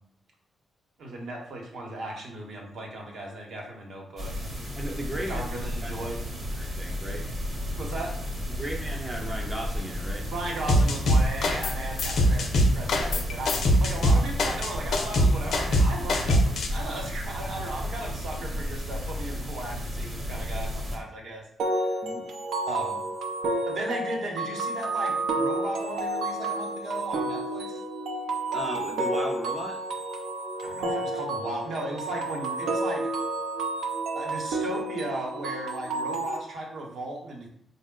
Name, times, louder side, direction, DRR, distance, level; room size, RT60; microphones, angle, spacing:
voice 1, 1.0-4.4 5.3-6.2 7.8-8.1 10.3-21.4 21.7-22.0 22.7-23.0 23.7-27.8 30.6-33.0 34.1-37.5, right 2 dB, 60° right, 1 dB, 0.8 m, -36 dB
sound 1, 4.2-21.0, equal, 35° right, 0.9 m, -33 dB
voice 2, 4.7-6.1 6.5-7.2 8.5-10.3 22.0-22.3 28.5-29.8, right 1 dB, 10° right, 0 dB, 0.4 m, -36 dB
sound 2, 10.7-11.7 12.0-16.7, equal, 60° left, 0.5 m, -22 dB
sound 3, 21.6-36.4, right 2 dB, 85° right, 0.5 m, -30 dB
4.3 x 2.0 x 3.7 m, 0.69 s
wide cardioid pair, 165°, 0 cm